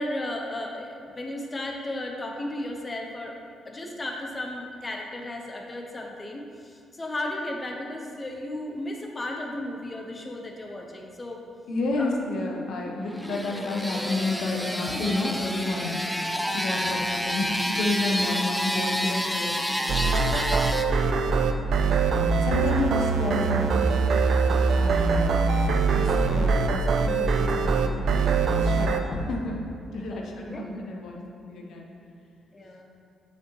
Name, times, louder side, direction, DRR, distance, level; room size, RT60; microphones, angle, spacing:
voice 1, 0.0-3.3 3.6-11.4 12.0-12.1 14.9-15.1 20.9-21.5 22.5-22.7 30.1-30.2 30.5-30.6 32.5-32.9, left 1 dB, 25° left, 1 dB, 0.8 m, -35 dB
voice 2, 11.7-16.0 16.5-20.3 21.8-22.1 22.4-23.9 24.7-25.5 25.9-28.3 28.5-29.6 29.9-31.9 32.5-32.7, left 2 dB, 75° left, 0 dB, 0.8 m, -30 dB
sound 1, 13.0-20.8, equal, 5° left, 0.4 m, -29 dB
sound 2, 19.9-29.0, right 4 dB, 70° right, 0.4 m, -23 dB
6.6 x 5.1 x 3.1 m, 2.4 s
cardioid pair, 75°, 0 cm